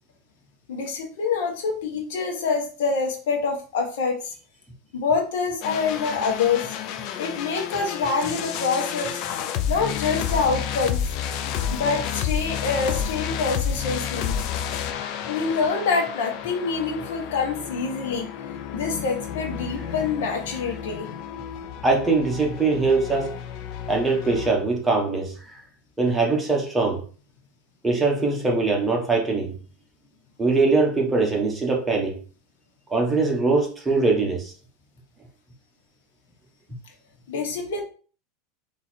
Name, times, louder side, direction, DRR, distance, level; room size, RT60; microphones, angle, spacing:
voice 1, 0.7-4.3 4.9-6.8 7.2-9.2 9.7-11.0 11.7-14.3 15.3-18.3 18.7-21.1 37.3-37.8, left 4 dB, 75° left, 1.3 m, -26 dB
sound 1, 5.6-24.5, left 8 dB, 55° left, 0.6 m, -31 dB
voice 2, 21.8-23.4 23.9-25.6 26.0-27.0 27.8-29.6 30.4-32.2 32.9-34.5, right 3 dB, 10° right, 1.3 m, -22 dB
3.8 x 2.9 x 4.5 m
supercardioid pair, 135°, 0 cm